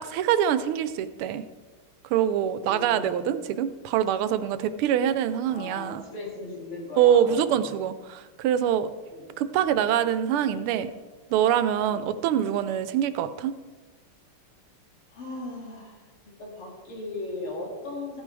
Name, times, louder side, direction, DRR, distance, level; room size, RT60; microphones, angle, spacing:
voice 1, 0.0-1.4 2.1-6.0 7.0-8.9 9.4-10.9 11.3-13.5, right 9 dB, 85° right, 12 dB, 1.5 m, -24 dB
voice 2, 2.6-3.3 5.4-7.7 9.1-9.8 11.9-12.2 15.1-18.2, left 2 dB, 80° left, -2 dB, 3.4 m, -38 dB
14.5 x 9.4 x 3.3 m, 1.3 s
omnidirectional pair, 2.3 m